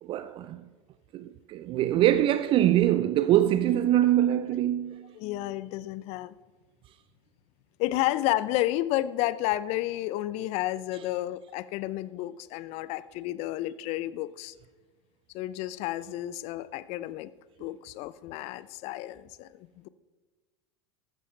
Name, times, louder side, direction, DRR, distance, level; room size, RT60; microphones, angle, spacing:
voice 1, 0.0-0.7 1.1-5.1, right 12 dB, 35° right, 0.5 m, -24 dB
voice 2, 5.1-6.4 7.8-14.5 15.3-17.3 17.6-19.9, left 15 dB, 45° left, 0.6 m, -31 dB
14.5 x 13.0 x 3.3 m
figure-of-eight pair, 85°, 15 cm